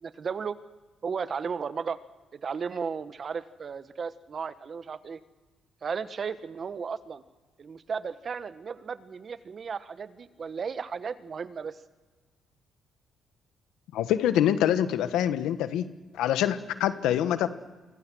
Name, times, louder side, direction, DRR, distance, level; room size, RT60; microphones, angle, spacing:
voice 1, 0.0-0.6 1.0-2.0 2.3-5.2 5.8-7.2 7.6-11.8, right 6 dB, 45° right, 12 dB, 1.3 m, -35 dB
voice 2, 13.9-15.8 16.1-17.5, left 11 dB, 90° left, 11 dB, 1.4 m, -25 dB
26.5 x 24.5 x 6.3 m, 1.3 s
cardioid pair, 90°, 0 cm